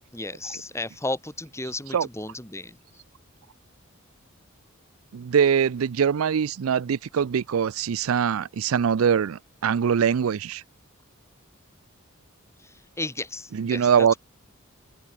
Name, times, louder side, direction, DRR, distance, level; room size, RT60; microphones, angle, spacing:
voice 1, 0.1-2.8 12.6-14.2, left 2 dB, 15° left, 7.9 m, -34 dB
voice 2, 5.1-10.6 13.5-14.1, right 7 dB, 90° right, 0.4 m, -23 dB
open air
head